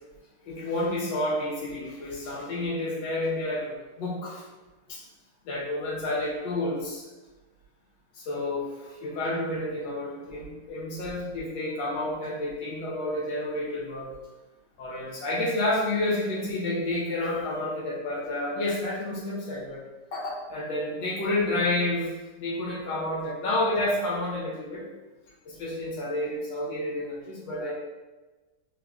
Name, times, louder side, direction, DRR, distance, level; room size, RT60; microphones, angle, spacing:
voice 1, 0.4-4.4 4.9-5.0 5.4-7.0 8.1-14.1 14.8-19.8 20.1-24.8 25.4-27.7, left 1 dB, 85° left, -6 dB, 1.5 m, -30 dB
3.7 x 3.4 x 2.3 m, 1.2 s
omnidirectional pair, 2.0 m